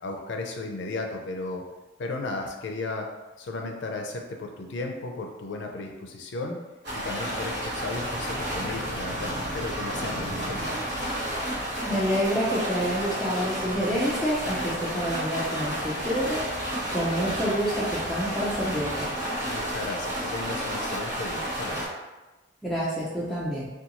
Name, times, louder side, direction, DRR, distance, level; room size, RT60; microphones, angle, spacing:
voice 1, 0.0-1.6 2.0-3.1 3.4-6.6 6.9-10.8 19.4-21.9, left 3 dB, 70° left, 2 dB, 0.4 m, -35 dB
sound 1, 6.8-21.9, right 1 dB, 65° right, 1.0 m, -31 dB
sound 2, 7.3-19.0, equal, 35° right, 0.7 m, -42 dB
voice 2, 11.9-16.4 16.9-19.1 22.6-23.7, equal, ahead, -8 dB, 0.4 m, -28 dB
2.5 x 2.3 x 2.8 m, 1.1 s
head